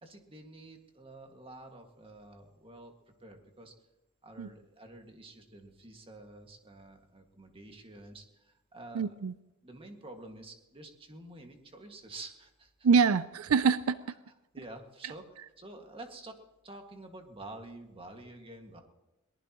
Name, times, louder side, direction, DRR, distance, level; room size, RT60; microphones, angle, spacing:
voice 1, 0.0-2.9 3.2-3.7 4.2-9.2 9.6-12.9 14.5-18.8, right 2 dB, 25° right, 3 dB, 2.0 m, -49 dB
voice 2, 8.9-9.3 12.8-14.0, right 5 dB, 80° right, 14 dB, 0.5 m, -25 dB
22.0 x 19.0 x 3.1 m, 0.98 s
head